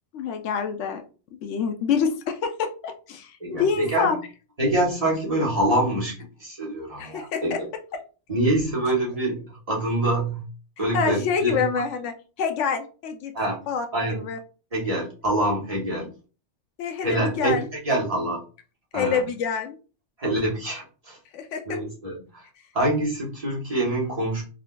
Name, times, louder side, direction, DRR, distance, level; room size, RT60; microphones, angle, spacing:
voice 1, 0.1-1.0 1.4-4.2 7.0-7.6 7.9-8.0 10.9-13.3 13.7-14.4 16.8-17.7 18.9-19.8 21.3-21.8, left 6 dB, 80° left, 6 dB, 0.9 m, -27 dB
voice 2, 3.4-4.1 4.6-6.1 6.4-7.6 8.3-10.4 10.8-11.7 13.3-13.6 13.9-14.2 14.7-16.1 17.0-18.4 18.9-19.2 20.2-21.2 21.7-22.4 22.7-24.4, right 1 dB, 35° right, -4 dB, 1.1 m, -25 dB
3.7 x 2.5 x 2.2 m, 0.35 s
omnidirectional pair, 1.2 m